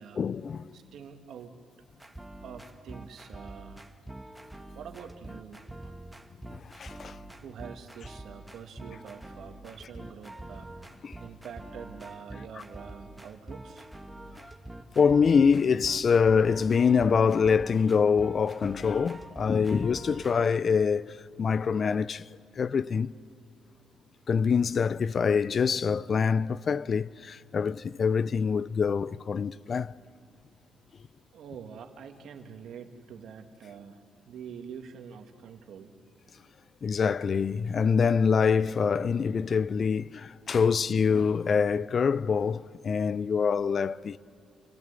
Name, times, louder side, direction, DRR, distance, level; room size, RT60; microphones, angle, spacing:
voice 1, 0.2-0.8 6.6-7.2 11.0-11.2 15.0-22.3 22.6-23.1 24.3-29.9 36.8-44.2, left 6 dB, 45° left, 0.4 m, -25 dB
voice 2, 0.7-1.6 2.4-3.9 4.7-5.9 7.4-13.9 31.3-35.9, right 7 dB, 70° right, 1.9 m, -46 dB
Tropicorp Advertisement, 1.9-20.4, right 1 dB, 5° right, 1.3 m, -45 dB
28.0 x 15.5 x 8.2 m
cardioid pair, 90°, 0 cm